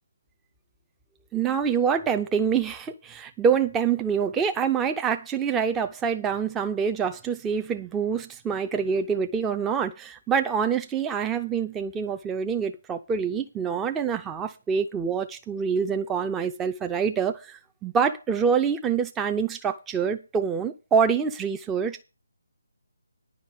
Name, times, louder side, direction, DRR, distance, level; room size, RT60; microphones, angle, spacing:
voice 1, 1.3-22.0, right 6 dB, 10° right, 0.6 m, -26 dB
10.5 x 5.1 x 8.3 m
figure-of-eight pair, 150°, 0 cm